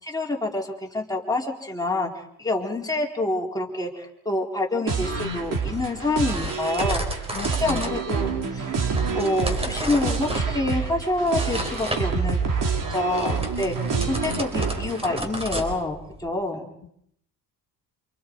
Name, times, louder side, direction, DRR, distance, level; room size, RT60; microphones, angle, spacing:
voice 1, 0.0-2.1 2.4-7.3 7.6-8.7 9.1-12.4 12.9-13.8 14.1-16.7, left 2 dB, 10° left, -1 dB, 4.2 m, -27 dB
sound 1, 4.9-15.2, right 5 dB, 55° right, 4.5 m, -27 dB
sound 2, 5.1-16.3, right 1 dB, 15° right, 4.7 m, -34 dB
voice 2, 7.3-8.0 16.8-16.9, left 6 dB, 30° left, 3 dB, 2.8 m, -38 dB
28.5 x 27.5 x 4.8 m, 0.72 s
cardioid pair, 120°, 38 cm